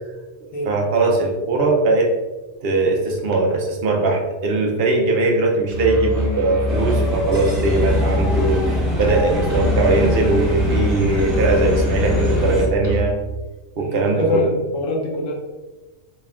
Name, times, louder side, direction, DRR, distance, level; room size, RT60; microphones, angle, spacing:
voice 1, 0.4-2.1 2.6-13.2 13.8-14.4, right 3 dB, 55° right, 1 dB, 0.8 m, -20 dB
Musical instrument, 5.7-13.3, left 1 dB, 35° right, 1.1 m, -23 dB
sound 1, 6.7-12.7, left 1 dB, ahead, 1.2 m, -25 dB
voice 2, 13.8-15.3, left 2 dB, 80° left, -1 dB, 1.1 m, -24 dB
4.2 x 3.5 x 2.4 m, 1.2 s
omnidirectional pair, 1.3 m